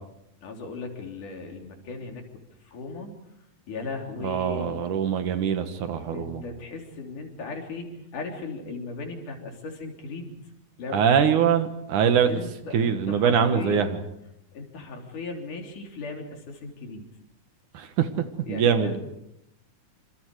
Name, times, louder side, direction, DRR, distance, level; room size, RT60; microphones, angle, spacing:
voice 1, 0.4-3.1 3.7-4.8 6.1-10.4 10.8-11.3 12.3-14.1 14.5-17.1 18.5-19.0, left 3 dB, 70° left, 2 dB, 4.8 m, -37 dB
voice 2, 4.2-6.4 10.9-12.4 12.7-13.9 17.7-18.1 18.5-19.0, right 7 dB, 70° right, 8 dB, 2.9 m, -23 dB
27.0 x 26.5 x 4.9 m, 0.83 s
omnidirectional pair, 3.8 m